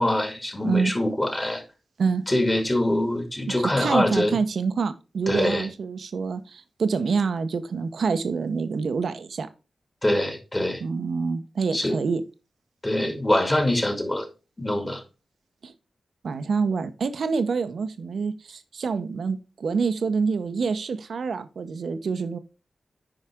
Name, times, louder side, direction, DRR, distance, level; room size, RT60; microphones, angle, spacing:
voice 1, 0.0-1.6 2.3-4.4 5.3-5.7 10.0-10.8 11.7-12.0 12.8-14.3 14.6-15.0, left 1 dB, 25° left, 2.4 m, -24 dB
voice 2, 3.6-9.5 10.8-12.2 15.6-15.7 16.2-22.4, right 5 dB, 80° right, 0.8 m, -26 dB
10.0 x 4.9 x 3.6 m
cardioid pair, 50°, 0 cm